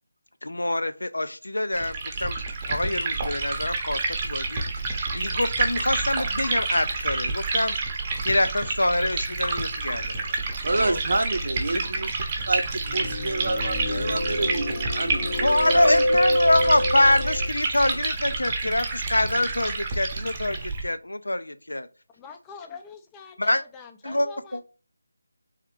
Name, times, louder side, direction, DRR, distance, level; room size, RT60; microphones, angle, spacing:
voice 1, 0.4-2.4 2.7-4.6 5.1-7.8 8.2-10.4 10.7-11.0 11.7-11.8 15.4-21.9 23.4-23.6 24.0-24.6, left 1 dB, 90° left, 0.5 m, -25 dB
Liquid, 1.7-20.8, right 3 dB, 25° right, 0.8 m, -29 dB
voice 2, 10.6-12.2 12.5-16.0, right 2 dB, 70° right, 0.6 m, -28 dB
sound 1, 12.8-17.5, left 1 dB, 55° left, 0.8 m, -26 dB
voice 3, 22.1-24.6, left 5 dB, 10° left, 0.4 m, -44 dB
3.5 x 3.3 x 3.1 m
figure-of-eight pair, 165°, 0 cm